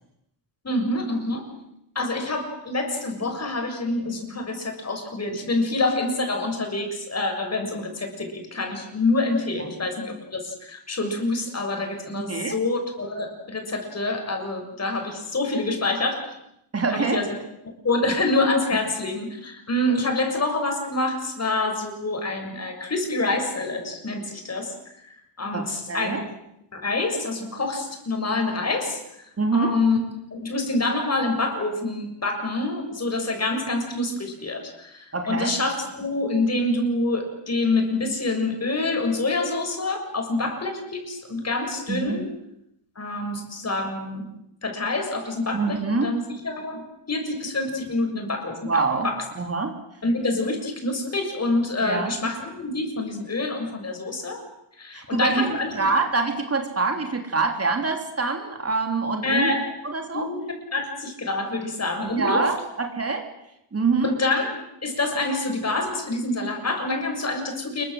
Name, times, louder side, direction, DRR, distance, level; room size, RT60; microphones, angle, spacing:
voice 1, 0.6-1.5 2.0-16.3 16.9-17.4 17.8-24.7 25.4-26.2 26.7-29.3 29.5-30.0 30.3-42.3 43.0-44.3 44.6-46.8 47.1-48.7 49.0-49.2 50.0-54.4 54.8-55.9 59.2-59.7 60.1-62.5 64.0-67.8, left 2 dB, 30° left, 4 dB, 6.9 m, -26 dB
voice 2, 16.7-17.2 25.5-26.2 29.4-29.7 35.1-35.5 41.9-42.2 45.5-46.1 48.6-49.1 49.4-49.7 51.8-52.1 54.9-59.5 59.8-60.3 62.0-63.2 63.7-64.1, right 4 dB, 30° right, 4 dB, 3.4 m, -25 dB
28.0 x 23.5 x 7.9 m, 0.80 s
cardioid pair, 125°, 48 cm